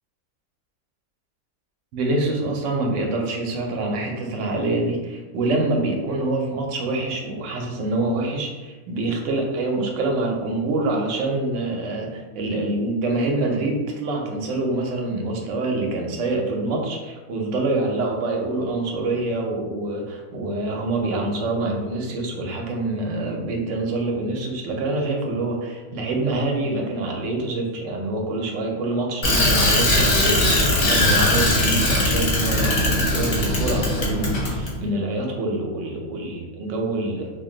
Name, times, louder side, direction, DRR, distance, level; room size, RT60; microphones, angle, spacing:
voice 1, 1.9-37.3, right 2 dB, 65° right, 1 dB, 0.8 m, -26 dB
Bicycle, 29.2-34.7, left 1 dB, 45° left, 0.7 m, -20 dB
2.5 x 2.1 x 3.7 m, 1.3 s
omnidirectional pair, 1.6 m